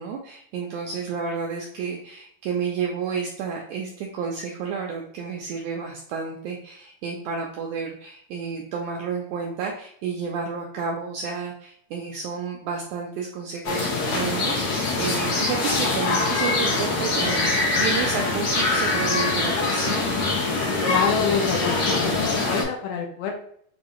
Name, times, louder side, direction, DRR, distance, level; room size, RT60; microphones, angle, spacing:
voice 1, 0.0-20.1, right 6 dB, 80° right, 0 dB, 1.7 m, -31 dB
sound 1, 13.6-22.6, left 3 dB, 65° left, 2.1 m, -23 dB
voice 2, 20.8-23.3, left 6 dB, 80° left, 2 dB, 2.3 m, -27 dB
6.5 x 2.6 x 3.0 m, 0.65 s
omnidirectional pair, 4.1 m